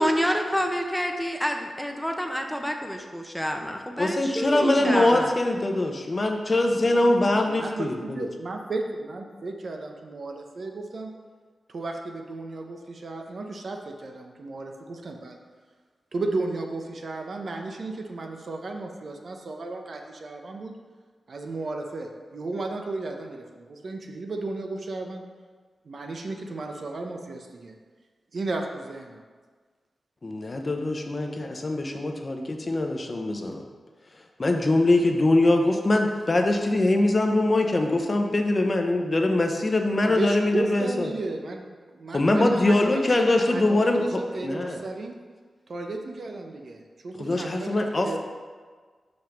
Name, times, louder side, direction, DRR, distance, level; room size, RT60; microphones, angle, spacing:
voice 1, 0.0-5.3, equal, ahead, 3 dB, 0.8 m, -28 dB
voice 2, 4.0-8.2 30.2-33.6 34.4-41.1 42.1-44.8 47.2-48.2, left 2 dB, 35° left, 3 dB, 0.8 m, -23 dB
voice 3, 4.7-5.3 6.8-11.1 11.7-15.4 16.1-20.7 21.3-25.2 25.8-27.7 28.3-29.2 40.0-45.1 45.7-48.2, right 2 dB, 60° right, 3 dB, 0.8 m, -34 dB
5.3 x 5.2 x 5.9 m, 1.5 s
wide cardioid pair, 95°, 0 cm